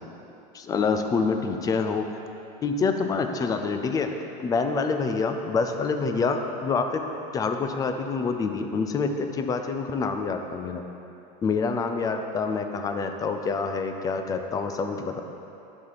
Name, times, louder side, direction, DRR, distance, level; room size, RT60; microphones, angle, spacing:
voice 1, 0.5-2.1 2.6-4.1 4.4-7.0 7.3-10.8 11.4-15.2, left 4 dB, 15° left, 6 dB, 0.4 m, -26 dB
10.5 x 5.7 x 4.1 m, 2.9 s
supercardioid pair, 155°, 21 cm